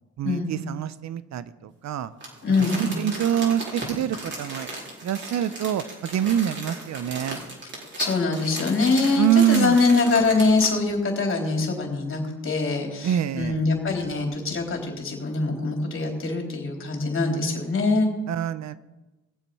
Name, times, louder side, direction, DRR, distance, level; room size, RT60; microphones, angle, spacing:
voice 1, 0.2-2.1 2.6-4.7 5.0-7.4 9.2-9.8 13.0-13.6 18.3-18.8, right 10 dB, 65° right, 15 dB, 0.8 m, -25 dB
Crumpling crinkling, 2.2-10.9 11.3-11.4, right 2 dB, 40° right, 4.6 m, -36 dB
voice 2, 2.4-2.8 8.0-18.1, left 3 dB, 40° left, 1 dB, 3.8 m, -23 dB
18.5 x 7.5 x 5.6 m, 1.1 s
cardioid pair, 90°, 30 cm